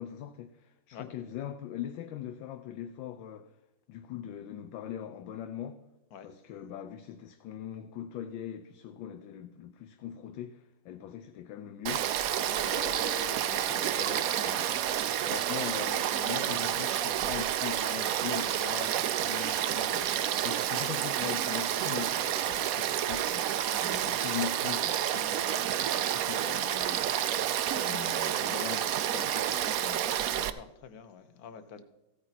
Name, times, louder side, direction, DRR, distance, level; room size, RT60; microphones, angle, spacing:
voice 1, 0.0-3.6 3.9-5.8 6.2-12.1 12.6-14.9 15.3-23.5 24.0-25.8 26.1-27.1 27.7-30.0, left 10 dB, 75° left, 1.4 m, -41 dB
Frog / Stream, 11.9-30.5, right 11 dB, 80° right, 0.7 m, -30 dB
voice 2, 23.8-24.3 30.3-31.8, left 7 dB, 55° left, 1.3 m, -47 dB
15.5 x 8.9 x 4.1 m
omnidirectional pair, 2.2 m